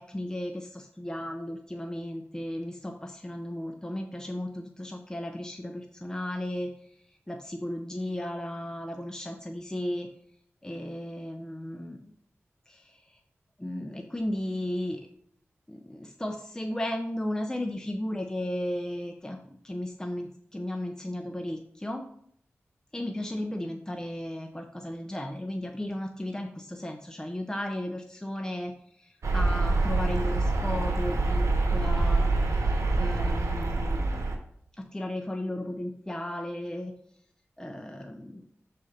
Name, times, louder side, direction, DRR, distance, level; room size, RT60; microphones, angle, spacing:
voice 1, 0.0-6.7 7.3-10.1 10.6-12.1 12.7-13.0 13.6-15.0 15.7-22.0 22.9-28.7 29.0-31.5 31.7-32.6 32.9-34.4 34.8-36.9 37.6-38.4, left 1 dB, 15° left, 3 dB, 0.7 m, -35 dB
sound 1, 29.2-34.4, right 2 dB, 80° right, 1.0 m, -26 dB
6.2 x 4.2 x 5.1 m, 0.67 s
wide cardioid pair, 65°, 5 cm